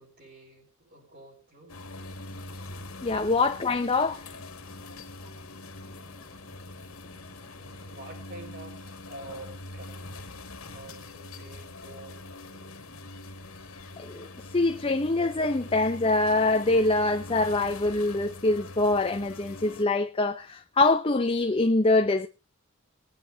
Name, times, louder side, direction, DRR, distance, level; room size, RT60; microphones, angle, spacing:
voice 1, 0.0-1.7 7.6-12.2 12.5-12.8, right 2 dB, 45° right, 6.5 m, -48 dB
sound 1, 1.7-19.8, left 2 dB, 80° left, 1.9 m, -43 dB
voice 2, 3.0-4.3 14.0-22.3, left 2 dB, 25° left, 0.7 m, -24 dB
20.5 x 9.2 x 3.5 m
head